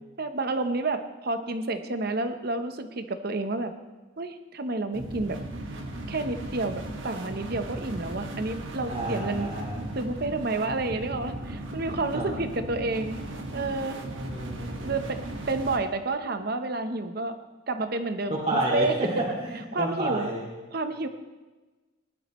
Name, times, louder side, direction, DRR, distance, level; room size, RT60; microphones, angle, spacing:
voice 1, 0.2-3.7 4.2-5.4 6.1-9.5 9.9-13.2 13.5-14.0 14.8-15.2 15.5-17.4 17.7-19.0 19.7-20.3 20.7-21.1, right 2 dB, 50° right, 8 dB, 0.9 m, -30 dB
sound 1, 4.9-15.8, right 1 dB, 75° right, 1.5 m, -37 dB
voice 2, 8.9-9.9 12.1-12.3 14.2-14.9 18.3-20.5, right 1 dB, 35° right, -6 dB, 2.4 m, -30 dB
19.5 x 11.5 x 3.1 m, 1.2 s
head